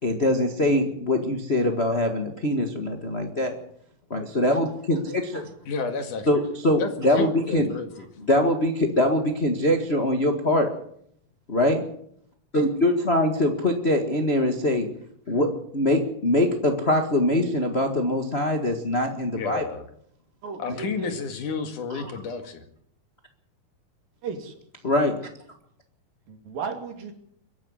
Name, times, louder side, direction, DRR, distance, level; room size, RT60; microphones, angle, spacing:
voice 1, 0.0-3.5 4.1-5.5 6.3-7.7 8.3-10.7 11.5-11.8 12.5-14.9 15.3-19.6 20.7-20.8 24.8-25.2, left 1 dB, 35° left, 4 dB, 1.0 m, -23 dB
voice 2, 5.7-6.3 6.8-8.1 19.4-19.8 20.6-22.6, left 5 dB, 65° left, 7 dB, 3.3 m, -31 dB
voice 3, 20.4-21.1 24.2-24.6 26.3-27.1, right 5 dB, 80° right, 5 dB, 4.4 m, -34 dB
23.5 x 11.5 x 9.9 m, 0.71 s
omnidirectional pair, 4.1 m